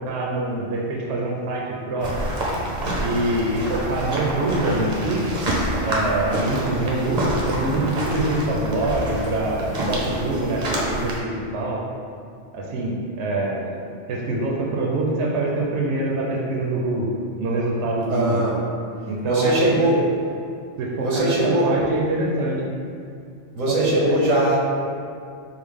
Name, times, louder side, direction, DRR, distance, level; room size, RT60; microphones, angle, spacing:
voice 1, 0.0-2.3 3.0-5.3 5.8-11.8 12.5-13.8 14.1-17.1 17.4-18.4 19.1-19.5 20.8-22.6 23.7-24.2, right 2 dB, 70° right, -3 dB, 0.8 m, -25 dB
sound 1, 2.0-11.2, right 1 dB, 45° right, 0.6 m, -27 dB
voice 2, 18.1-18.6 19.3-20.0 21.0-21.7 23.5-24.6, right 1 dB, 90° right, -4 dB, 1.2 m, -20 dB
4.8 x 2.1 x 3.5 m, 2.3 s
omnidirectional pair, 1.3 m